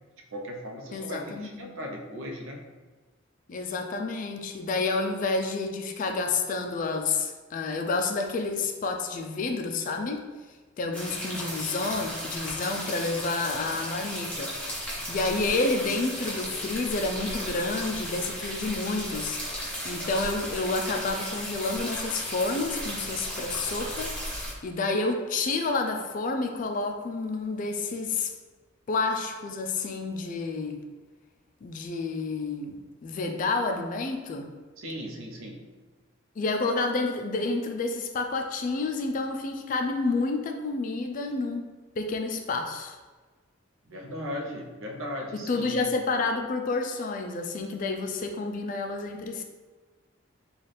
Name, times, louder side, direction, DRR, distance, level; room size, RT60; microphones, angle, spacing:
voice 1, 0.3-2.6 34.8-35.7 43.9-45.9, equal, 80° right, 0 dB, 0.6 m, -37 dB
voice 2, 0.9-1.7 3.5-10.2 10.8-28.3 28.9-30.8 31.6-34.5 36.4-41.7 42.0-43.0 45.3-49.4, left 3 dB, 40° left, 4 dB, 0.3 m, -29 dB
sound 1, 10.9-24.5, equal, 5° left, 0.8 m, -35 dB
4.1 x 2.4 x 3.3 m, 1.3 s
head